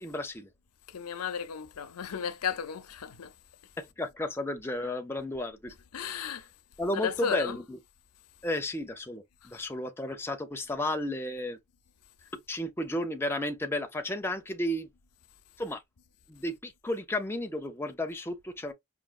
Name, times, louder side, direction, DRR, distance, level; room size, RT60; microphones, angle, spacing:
voice 1, 0.0-0.5 3.8-6.3 6.8-7.8 8.4-11.6 12.5-14.9 15.6-15.8 16.3-18.7, left 1 dB, 10° left, 0.5 m, -33 dB
voice 2, 0.9-3.3 5.9-6.5 6.9-7.6 9.5-9.6, left 7 dB, 90° left, 0.6 m, -34 dB
5.0 x 2.6 x 2.4 m
head